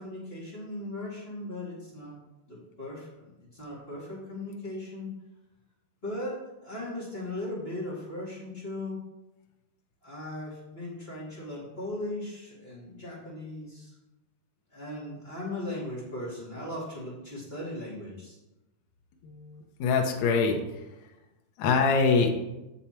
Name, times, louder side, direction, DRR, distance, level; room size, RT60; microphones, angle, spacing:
voice 1, 0.0-2.1 2.5-5.1 6.0-9.0 10.0-13.9 14.7-18.4, left 1 dB, 25° left, -8 dB, 1.5 m, -38 dB
voice 2, 19.2-20.6 21.6-22.3, left 4 dB, 90° left, 2 dB, 1.5 m, -24 dB
6.9 x 6.8 x 4.4 m, 0.99 s
omnidirectional pair, 4.4 m